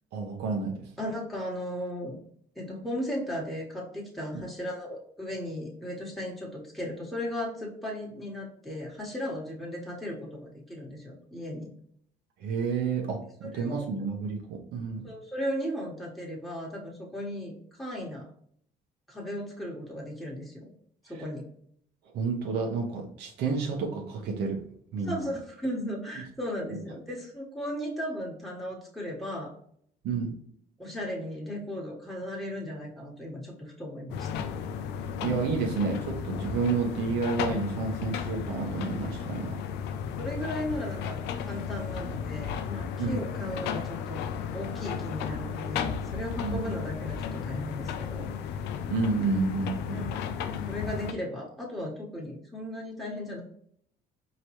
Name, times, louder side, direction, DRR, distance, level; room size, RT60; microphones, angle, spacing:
voice 1, 0.1-0.8 12.4-15.1 22.1-24.6 24.9-25.3 26.7-26.8 30.0-30.4 35.2-39.6 43.0-43.2 46.4-46.6 48.9-50.0, right 4 dB, 80° right, 1 dB, 1.0 m, -30 dB
voice 2, 1.0-2.2 2.5-11.7 13.4-13.8 15.0-18.3 19.1-20.6 21.0-21.4 25.1-29.5 30.8-34.4 40.2-44.2 44.5-48.3 49.9-50.0 50.7-53.4, equal, ahead, -3 dB, 1.3 m, -36 dB
sound 1, 34.1-51.1, left 7 dB, 85° left, 0.4 m, -34 dB
4.9 x 3.0 x 3.0 m, 0.65 s
cardioid pair, 110°, 17 cm